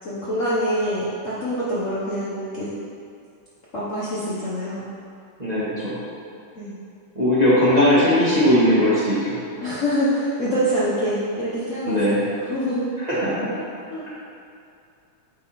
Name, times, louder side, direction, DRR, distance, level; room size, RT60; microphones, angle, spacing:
voice 1, 0.0-2.7 3.7-4.9 6.5-6.7 9.6-12.2 12.5-12.9 13.5-13.6 13.9-14.1, equal, 50° left, -10 dB, 1.0 m, -25 dB
voice 2, 5.4-5.9 7.1-9.4 11.9-12.2 13.0-13.5, equal, 25° right, -10 dB, 1.1 m, -19 dB
8.8 x 3.5 x 4.2 m, 2.5 s
omnidirectional pair, 2.4 m